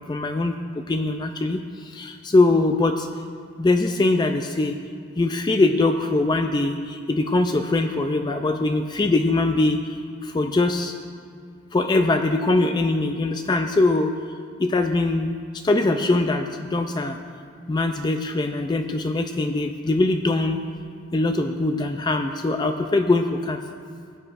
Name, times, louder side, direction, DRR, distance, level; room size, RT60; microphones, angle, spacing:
voice 1, 0.0-3.1 3.6-4.8 5.2-10.0 10.2-10.9 11.7-14.1 14.6-17.2 17.7-20.6 21.1-23.6, left 2 dB, 20° left, 6 dB, 0.3 m, -22 dB
17.0 x 9.7 x 2.5 m, 2.1 s
head